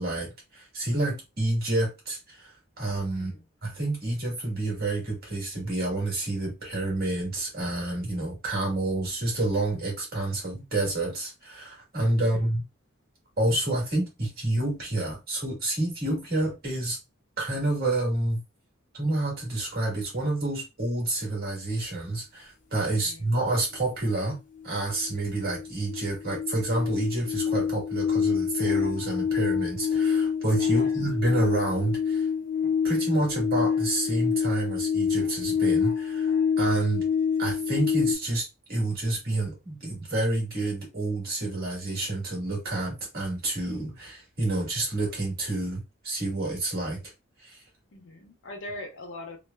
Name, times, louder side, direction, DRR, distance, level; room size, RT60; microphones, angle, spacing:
voice 1, 0.0-3.3 3.6-12.6 13.4-17.0 17.4-18.4 18.9-24.4 24.6-32.3 32.8-37.0 37.4-47.0 47.4-47.6, right 2 dB, 50° right, 1.5 m, -29 dB
voice 2, 3.1-3.4 12.2-12.5 22.9-23.3 30.7-31.1 47.9-49.4, left 1 dB, 70° left, 0.8 m, -42 dB
sound 1, 24.6-24.7 25.0-38.2, left 7 dB, 40° left, 0.6 m, -27 dB
3.1 x 2.0 x 2.2 m
head